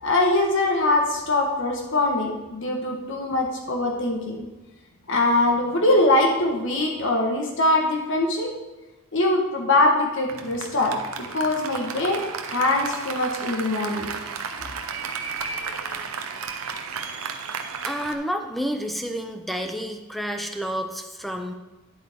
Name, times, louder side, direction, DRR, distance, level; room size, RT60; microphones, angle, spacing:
voice 1, 0.0-4.4 5.1-8.5 9.1-11.0 11.3-14.1, left 2 dB, 60° left, 1 dB, 1.3 m, -22 dB
Applause, 10.3-18.1, right 5 dB, 70° right, 0.8 m, -33 dB
voice 2, 17.8-21.5, equal, ahead, 5 dB, 0.7 m, -30 dB
10.5 x 8.1 x 3.6 m, 1.1 s
head